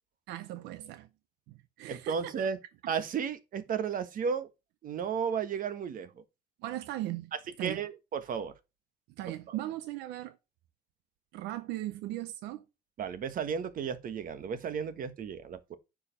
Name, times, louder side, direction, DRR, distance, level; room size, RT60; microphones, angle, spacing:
voice 1, 0.3-1.1 1.5-2.4 2.8-2.9 6.6-7.3 7.6-7.8 9.2-10.4 11.3-12.6, right 15 dB, 90° right, 0.6 m, -38 dB
voice 2, 1.9-2.6 2.9-4.5 4.8-6.1 7.6-8.5 9.5-9.6 13.0-15.8, right 7 dB, 55° right, 1.4 m, -33 dB
9.7 x 5.0 x 5.7 m
cardioid pair, 110°, 17 cm